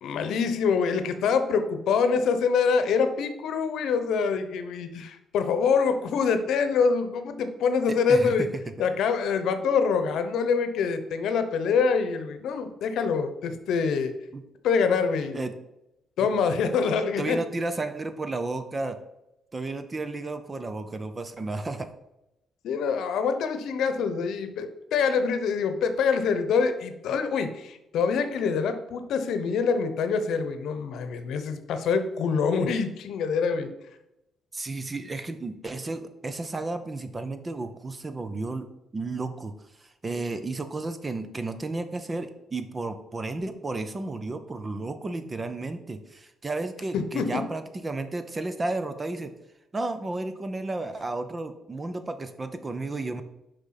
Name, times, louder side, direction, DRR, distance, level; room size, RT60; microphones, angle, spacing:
voice 1, 0.0-8.5 8.8-14.1 14.6-15.4 16.2-17.4 22.6-33.7 46.9-47.4, left 5 dB, 75° left, 9 dB, 0.9 m, -25 dB
voice 2, 7.9-8.7 14.3-14.4 15.3-15.5 16.2-16.3 17.2-19.0 19.5-21.9 34.5-49.3 49.7-53.2, right 2 dB, 25° right, 10 dB, 0.8 m, -33 dB
6.3 x 5.1 x 5.8 m, 0.89 s
cardioid pair, 90°, 0 cm